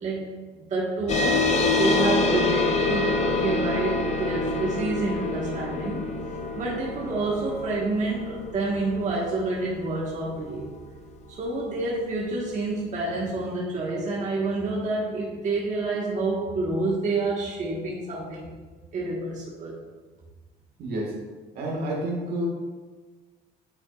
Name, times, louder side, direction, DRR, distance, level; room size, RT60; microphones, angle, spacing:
voice 1, 0.0-6.1 6.5-10.7 11.4-18.5 18.9-19.7, right 2 dB, 45° right, -5 dB, 1.4 m, -28 dB
sound 1, 1.1-12.0, left 3 dB, 40° left, 0.6 m, -27 dB
voice 2, 20.8-21.1 21.5-22.5, right 1 dB, 65° right, -1 dB, 1.7 m, -29 dB
9.5 x 4.5 x 2.4 m, 1.3 s
cardioid pair, 110°, 17 cm